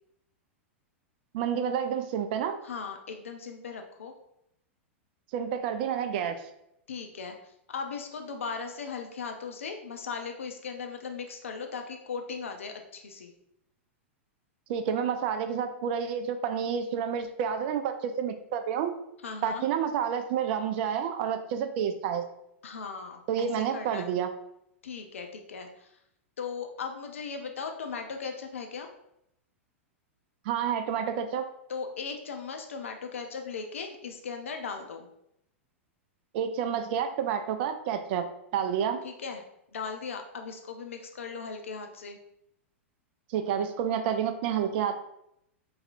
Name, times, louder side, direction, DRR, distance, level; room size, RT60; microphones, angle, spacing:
voice 1, 1.3-2.6 5.3-6.4 14.7-18.9 19.4-22.2 23.3-24.3 30.5-31.4 36.3-38.2 38.5-39.0 43.3-44.9, right 8 dB, 55° right, 8 dB, 0.4 m, -29 dB
voice 2, 2.6-4.1 6.9-13.3 19.2-19.6 22.6-24.1 24.8-25.9 26.4-28.9 31.7-35.1 39.0-39.4 39.7-42.2, left 5 dB, 80° left, 4 dB, 0.4 m, -38 dB
3.9 x 2.6 x 2.4 m, 0.78 s
hypercardioid pair, 100°, 7 cm